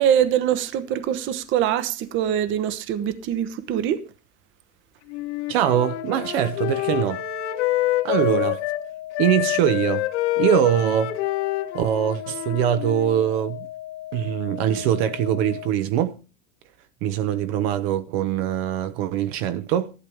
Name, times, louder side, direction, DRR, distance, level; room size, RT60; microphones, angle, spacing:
voice 1, 0.0-4.0, right 10 dB, 35° right, 0.9 m, -23 dB
Wind instrument woodwind instrument, 5.1-8.8 9.1-13.2, left 15 dB, 70° left, 1.6 m, -27 dB
voice 2, 5.5-7.2 8.0-8.6 9.2-10.1 10.4-11.2 11.7-13.7 14.1-16.2 17.0-19.9, right 10 dB, 60° right, 0.9 m, -23 dB
sound 1, 5.7-15.7, left 13 dB, 40° left, 1.2 m, -37 dB
13.5 x 11.5 x 3.5 m
supercardioid pair, 150°, 35 cm